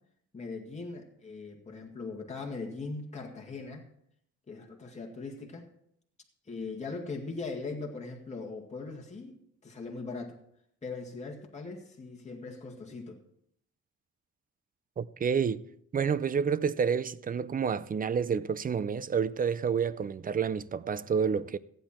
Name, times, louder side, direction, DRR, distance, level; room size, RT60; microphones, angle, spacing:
voice 1, 0.3-3.9 4.5-5.7 6.5-10.4 10.8-13.2, left 3 dB, 20° left, 2.0 m, -40 dB
voice 2, 15.0-15.6 15.9-21.6, right 6 dB, 30° right, 0.5 m, -29 dB
15.0 x 9.3 x 4.3 m
cardioid pair, 120°, 31 cm